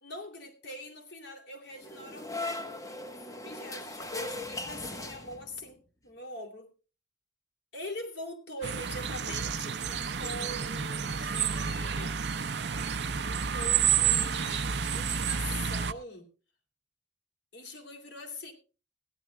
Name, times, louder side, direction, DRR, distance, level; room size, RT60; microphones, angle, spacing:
voice 1, 0.0-6.7 7.7-12.1 13.2-16.3 17.5-18.5, left 1 dB, 60° left, 2.9 m, -43 dB
sound 1, 1.8-5.7, left 2 dB, 15° left, 1.1 m, -39 dB
sound 2, 8.6-15.9, right 7 dB, 60° right, 0.7 m, -30 dB
16.0 x 11.0 x 3.3 m
head